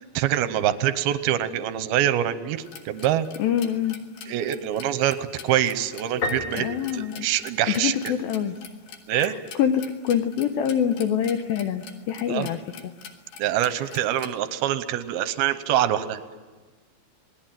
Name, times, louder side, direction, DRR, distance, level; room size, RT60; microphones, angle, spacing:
voice 1, 0.2-3.3 4.3-6.7 6.9-8.1 9.1-9.3 12.3-12.5 13.4-16.2, right 11 dB, 75° right, 12 dB, 2.3 m, -25 dB
sound 1, 2.6-14.3, left 7 dB, 60° left, 3.1 m, -44 dB
voice 2, 3.4-4.0 6.5-7.3 7.8-8.6 9.1-12.6, left 9 dB, 80° left, 7 dB, 2.1 m, -25 dB
Piano, 6.2-8.0, left 2 dB, 45° left, 1.7 m, -33 dB
28.0 x 20.0 x 9.1 m, 1.4 s
omnidirectional pair, 5.5 m